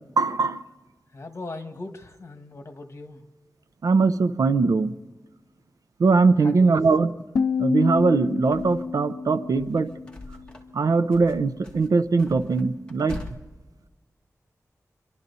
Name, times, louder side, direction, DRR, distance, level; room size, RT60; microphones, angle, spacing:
voice 1, 0.2-0.6 3.8-4.9 6.0-7.1 7.6-9.9 10.7-13.2, right 4 dB, 85° right, 12 dB, 0.7 m, -21 dB
voice 2, 1.1-3.2 6.4-6.8, left 2 dB, 50° left, 6 dB, 1.8 m, -39 dB
sound 1, 7.4-10.4, left 5 dB, 85° left, 0.5 m, -28 dB
sound 2, 8.0-9.0 9.4-10.8 11.1-13.4, left 2 dB, 15° left, 2.1 m, -42 dB
29.0 x 12.0 x 4.1 m, 1.3 s
wide cardioid pair, 80°, 6 cm